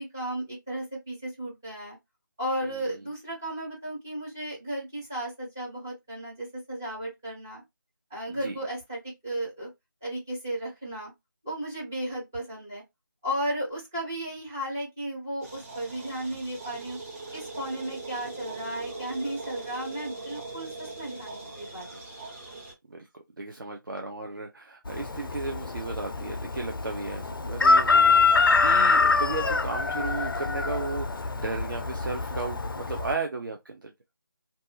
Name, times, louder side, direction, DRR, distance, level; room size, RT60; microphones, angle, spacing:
voice 1, 0.0-2.0 2.4-7.6 8.1-9.7 10.0-11.1 11.4-12.8 13.2-17.0 17.3-22.1, right 1 dB, 5° right, 0.4 m, -34 dB
voice 2, 8.2-8.6 22.9-33.9, right 3 dB, 65° right, 0.6 m, -35 dB
sound 1, 15.4-22.7, right 3 dB, 40° right, 1.0 m, -40 dB
Chicken rooster, 24.9-33.1, left 4 dB, 75° left, 0.4 m, -24 dB
2.6 x 2.3 x 2.6 m
figure-of-eight pair, 165°, 12 cm